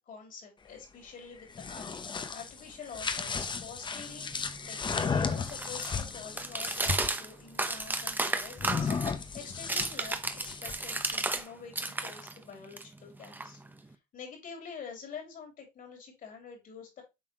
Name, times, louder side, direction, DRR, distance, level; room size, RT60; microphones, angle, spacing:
voice 1, 0.0-1.8 2.3-17.0, left 6 dB, 55° left, 3 dB, 3.0 m, -47 dB
sound 1, 1.4-7.2 8.6-10.9, left 5 dB, 25° left, 0.8 m, -34 dB
sound 2, 4.1-11.5 11.7-13.9, right 2 dB, 10° right, 0.7 m, -34 dB
7.3 x 4.2 x 3.1 m, 0.23 s
cardioid pair, 110°, 17 cm